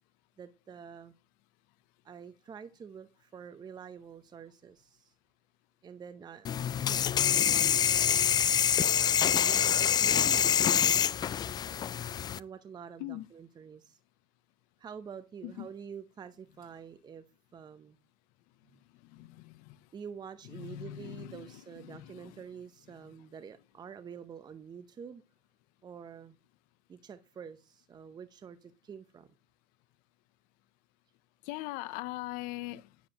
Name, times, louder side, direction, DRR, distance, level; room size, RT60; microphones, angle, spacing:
voice 1, 0.4-1.1 2.0-5.1 5.8-6.5 6.9-8.4 9.3-11.0 12.4-14.0 14.8-17.2 17.5-18.0 18.7-18.8 19.2-19.3 19.9-25.2 25.8-26.3 26.9-29.3, right 7 dB, 25° right, 0.7 m, -47 dB
sound 1, 6.4-12.4, left 9 dB, 25° left, 0.3 m, -26 dB
voice 2, 19.0-19.8 20.5-21.5 21.8-22.4 31.4-32.9, left 16 dB, 65° left, 0.6 m, -41 dB
9.7 x 7.2 x 2.9 m
supercardioid pair, 105°, 16 cm